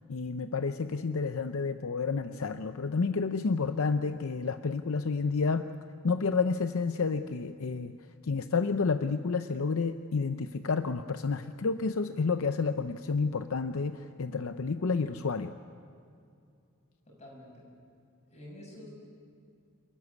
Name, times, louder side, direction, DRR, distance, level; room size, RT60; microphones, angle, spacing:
voice 1, 0.0-5.7 6.0-8.0 8.2-15.5, left 4 dB, 70° left, 9 dB, 0.6 m, -30 dB
voice 2, 17.1-17.7 18.3-18.9, left 1 dB, 30° left, -1 dB, 6.6 m, -48 dB
27.5 x 14.0 x 9.6 m, 2.5 s
head